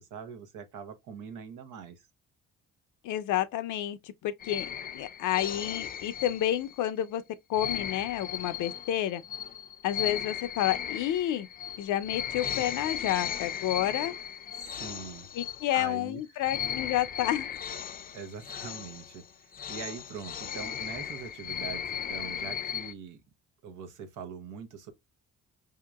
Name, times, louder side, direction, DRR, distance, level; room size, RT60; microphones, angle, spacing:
voice 1, 0.0-2.1 14.6-15.3 15.7-16.2 18.1-23.2 23.6-24.9, right 6 dB, 85° right, 0.9 m, -43 dB
voice 2, 3.0-4.7 4.9-7.2 7.5-9.2 9.8-11.5 11.8-14.1 15.3-17.5, left 12 dB, 80° left, 0.5 m, -30 dB
sound 1, 4.4-6.9 7.5-16.1 16.4-22.9, left 9 dB, 30° left, 0.4 m, -37 dB
5.0 x 2.8 x 2.3 m
cardioid pair, 90°, 30 cm